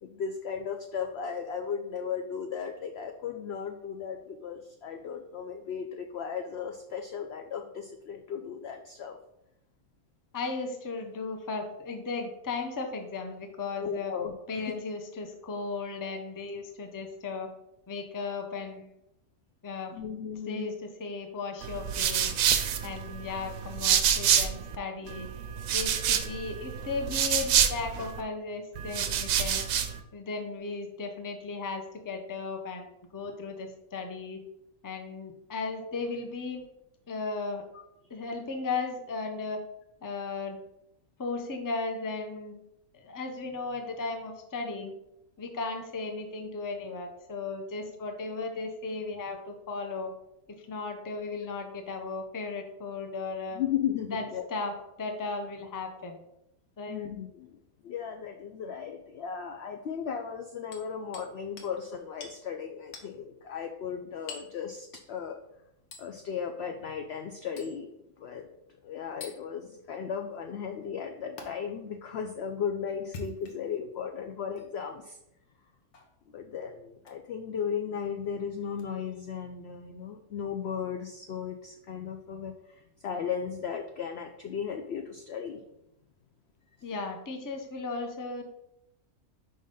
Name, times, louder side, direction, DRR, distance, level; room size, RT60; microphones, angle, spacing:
voice 1, 0.0-9.2 13.8-14.3 14.7-14.8 19.9-20.7 35.8-36.0 53.5-54.5 56.9-57.6 57.8-65.4 66.0-68.5 68.8-75.2 76.3-85.6, left 7 dB, 70° left, 6 dB, 0.6 m, -36 dB
voice 2, 10.3-14.1 14.5-17.5 17.9-18.9 19.6-20.0 20.5-22.3 22.8-25.3 25.7-29.7 30.1-34.4 34.8-36.6 37.1-37.6 38.1-39.6 40.0-40.6 41.2-42.6 42.9-44.9 45.4-50.1 50.5-53.6 54.1-56.3 56.8-57.0 86.8-88.4, left 4 dB, 25° left, 4 dB, 0.4 m, -36 dB
sound 1, 21.6-24.8 25.1-28.2 28.8-30.0, right 9 dB, 70° right, 1.0 m, -27 dB
Hammer, 60.7-61.3 61.6-61.7 62.2-62.4 62.9-63.1 64.3-64.6 65.9-66.1 67.6-67.8 69.2-69.4 71.4-71.5 73.0-73.8 74.5-74.7 75.9-76.1 77.0-77.2 78.8-78.9, left 3 dB, 85° left, 1.5 m, -44 dB
5.0 x 3.9 x 5.3 m, 0.83 s
omnidirectional pair, 1.6 m